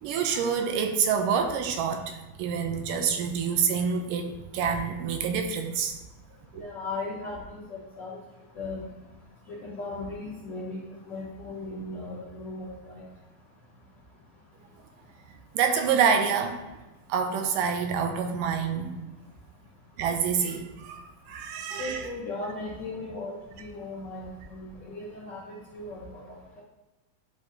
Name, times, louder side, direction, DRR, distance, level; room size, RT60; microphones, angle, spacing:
voice 1, 0.0-5.9 6.5-6.6 15.5-16.6 17.1-18.9 20.0-22.1, right 6 dB, 85° right, 5 dB, 2.1 m, -27 dB
voice 2, 6.5-8.2 8.5-8.9 9.5-13.0 21.8-26.6, left 2 dB, 75° left, -7 dB, 1.0 m, -37 dB
10.5 x 4.5 x 2.8 m, 1.1 s
omnidirectional pair, 3.9 m